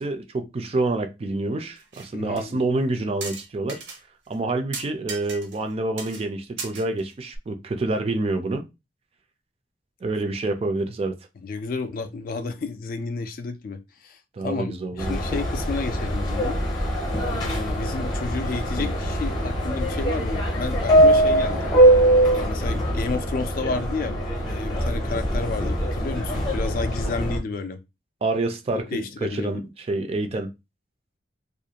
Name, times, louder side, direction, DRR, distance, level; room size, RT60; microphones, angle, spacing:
voice 1, 0.0-3.8 4.3-8.7 10.0-11.2 14.3-15.2 28.2-30.5, right 2 dB, 35° right, 0.3 m, -27 dB
sound 1, 1.8-2.1 2.4-2.5 3.2-4.0 4.3-4.4 4.7-5.7 6.0-6.2 6.6-7.4, right 4 dB, 80° right, 0.6 m, -36 dB
voice 2, 2.1-2.6 11.4-16.6 17.3-21.7 22.3-27.8 28.7-29.6, left 4 dB, 50° left, 0.3 m, -31 dB
Subway metro underground, 15.0-27.4, right 1 dB, 25° left, 0.7 m, -22 dB
2.4 x 2.1 x 2.8 m
head